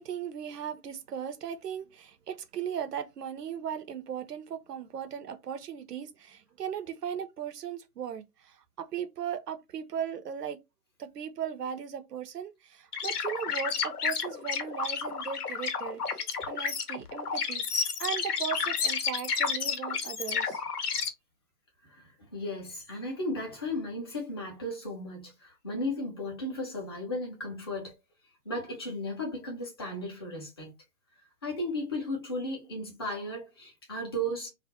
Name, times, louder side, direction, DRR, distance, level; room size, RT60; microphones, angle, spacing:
voice 1, 0.0-10.6 11.0-20.6, right 8 dB, 80° right, 0.6 m, -37 dB
sound 1, 12.9-21.1, left 6 dB, 75° left, 0.7 m, -31 dB
voice 2, 21.8-27.9 28.4-30.7 31.4-34.5, left 1 dB, 15° left, 0.4 m, -35 dB
2.4 x 2.0 x 2.6 m
figure-of-eight pair, 130°, 47 cm